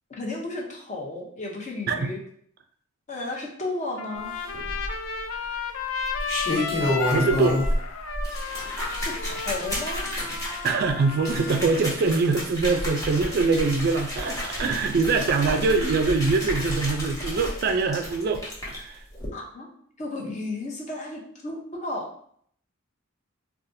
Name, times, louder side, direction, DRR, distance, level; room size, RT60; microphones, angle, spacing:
voice 1, 0.1-2.2 3.1-4.3 9.0-10.1 19.3-19.7 20.0-22.1, left 2 dB, 35° left, 0 dB, 0.7 m, -33 dB
Trumpet, 4.0-11.6, left 5 dB, 70° left, 0.4 m, -33 dB
sound 1, 4.5-5.2 6.0-7.8 8.1-18.8 19.1-19.3, left 1 dB, 15° left, 0.9 m, -30 dB
voice 2, 7.1-7.6 10.6-19.0, right 4 dB, 45° right, 6 dB, 0.3 m, -23 dB
4.0 x 2.3 x 2.6 m, 0.63 s
head